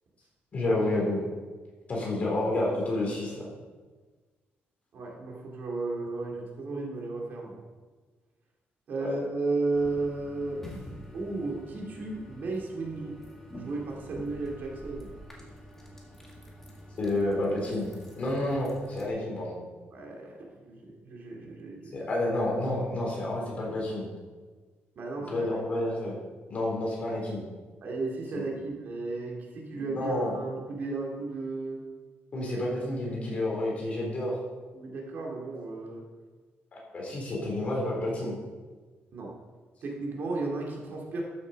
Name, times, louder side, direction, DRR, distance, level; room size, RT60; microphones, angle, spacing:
voice 1, 0.5-1.2 1.9-3.5 9.0-9.2 17.0-17.9 18.2-19.6 21.9-24.1 25.3-26.2 26.5-27.4 28.3-28.4 29.7-30.3 32.3-34.4 36.7-38.4, left 1 dB, 35° left, -3 dB, 3.7 m, -29 dB
voice 2, 4.9-7.6 8.9-10.6 11.1-13.2 13.5-15.1 19.9-22.1 25.0-25.5 27.8-31.8 34.7-36.0 37.0-37.1 39.1-39.3 39.8-41.2, right 3 dB, 50° right, -1 dB, 2.5 m, -34 dB
sound 1, 9.7-19.1, equal, 10° left, 2.0 m, -47 dB
13.5 x 7.1 x 5.3 m, 1.4 s
cardioid pair, 170°, 4 cm